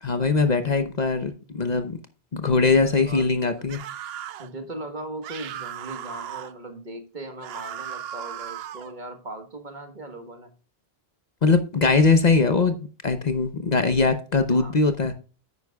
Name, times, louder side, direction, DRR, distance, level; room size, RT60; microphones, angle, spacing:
voice 1, 0.0-2.0 2.3-3.8 11.4-12.8 13.0-15.1, left 4 dB, 45° left, 0.9 m, -21 dB
voice 2, 2.8-3.7 4.4-10.5 14.5-14.7, right 2 dB, 50° right, 1.5 m, -38 dB
sound 1, 3.7-4.5 5.2-6.5 7.4-8.9, right 10 dB, 75° right, 0.8 m, -36 dB
9.6 x 9.5 x 2.3 m
omnidirectional pair, 1.0 m